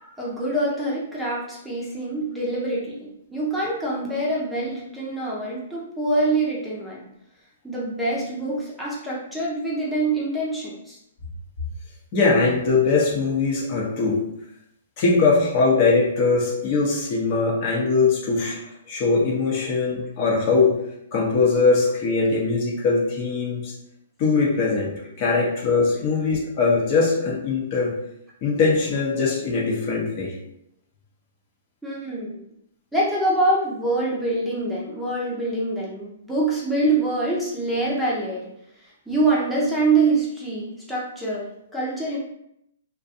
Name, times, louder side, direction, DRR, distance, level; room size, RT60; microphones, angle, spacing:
voice 1, 0.2-7.1 7.6-11.0 19.6-19.7 25.4-25.5 31.8-32.4 32.9-38.5 38.8-42.2, right 2 dB, ahead, -7 dB, 0.7 m, -25 dB
voice 2, 12.1-14.2 15.0-18.6 18.9-20.7 21.1-23.7 24.2-24.9 25.2-27.9 28.4-30.3, left 4 dB, 40° left, -3 dB, 0.8 m, -21 dB
2.5 x 2.2 x 2.6 m, 0.76 s
hypercardioid pair, 130°, 0 cm